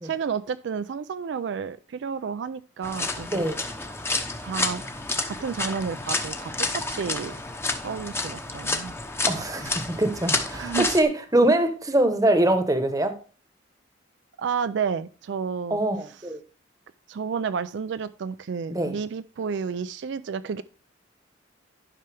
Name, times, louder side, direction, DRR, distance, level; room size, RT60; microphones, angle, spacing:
voice 1, 0.0-3.5 4.4-4.8 5.3-7.3 7.8-9.0 10.5-10.9 14.4-15.8 17.1-20.6, right 6 dB, 70° right, 12 dB, 0.4 m, -31 dB
sound 1, 2.8-11.0, left 3 dB, 15° left, 0.8 m, -30 dB
voice 2, 3.3-3.6 9.3-13.1 15.7-16.4 18.7-19.0, right 1 dB, 20° right, 8 dB, 1.0 m, -23 dB
11.0 x 5.7 x 3.4 m, 0.39 s
head